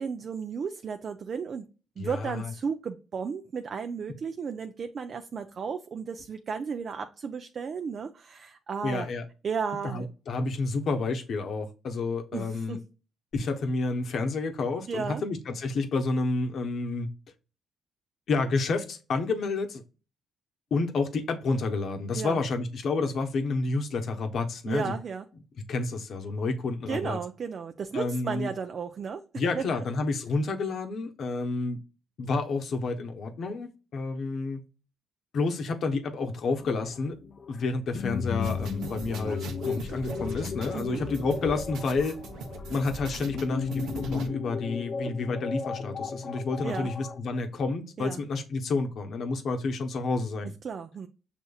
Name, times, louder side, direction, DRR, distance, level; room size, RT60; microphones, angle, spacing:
voice 1, 0.0-1.7 2.0-9.1 9.4-10.1 12.3-12.8 14.9-15.2 22.1-22.4 24.7-25.3 26.9-29.2 29.5-29.6 40.7-41.0 46.6-46.9 48.0-48.2 50.6-51.1, right 6 dB, 50° right, 0.4 m, -34 dB
voice 2, 2.0-2.5 4.1-4.2 8.8-9.2 9.8-12.8 13.3-17.1 18.3-19.8 20.7-24.9 25.7-27.2 27.9-28.5 29.3-31.8 32.2-34.6 35.3-37.2 37.5-42.2 42.7-50.5, left 3 dB, 60° left, 0.9 m, -30 dB
sound 1, 36.6-47.2, left 5 dB, 45° left, 0.5 m, -35 dB
sound 2, 38.4-44.3, right 3 dB, 90° right, 0.8 m, -40 dB
6.9 x 2.9 x 2.3 m
cardioid pair, 90°, 0 cm